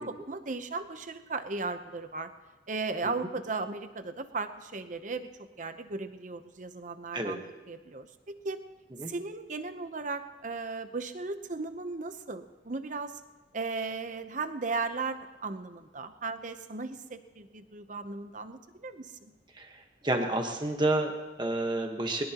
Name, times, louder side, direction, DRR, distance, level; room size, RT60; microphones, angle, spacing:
voice 1, 0.0-2.3 2.7-5.3 5.6-8.6 9.1-13.1 13.5-19.1, right 3 dB, 45° right, 9 dB, 0.8 m, -36 dB
voice 2, 20.0-22.2, right 2 dB, 25° right, 3 dB, 1.3 m, -29 dB
21.0 x 20.0 x 3.0 m, 1.2 s
head